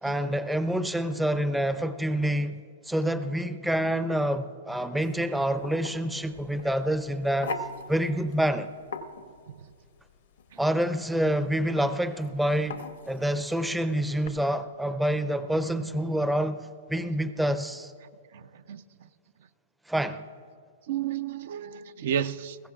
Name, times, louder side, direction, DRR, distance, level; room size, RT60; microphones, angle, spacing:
voice 1, 0.0-7.6 7.9-8.7 10.6-17.9 19.9-20.2, right 1 dB, 5° right, 0.5 m, -27 dB
sound 1, 5.0-14.3, left 3 dB, 75° left, 0.9 m, -42 dB
voice 2, 18.3-18.8 20.9-22.6, right 9 dB, 60° right, 0.4 m, -32 dB
21.0 x 16.5 x 2.4 m
hypercardioid pair, 120°, 0 cm